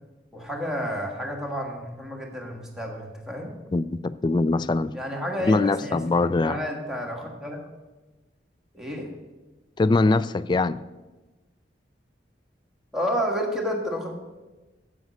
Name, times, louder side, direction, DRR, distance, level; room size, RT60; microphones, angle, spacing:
voice 1, 0.3-3.5 4.9-7.6 8.7-9.1 12.9-14.1, equal, 5° right, -1 dB, 1.7 m, -30 dB
voice 2, 3.7-4.9 5.4-6.6 9.8-10.8, left 3 dB, 25° left, 16 dB, 0.3 m, -22 dB
9.3 x 8.3 x 6.5 m, 1.1 s
head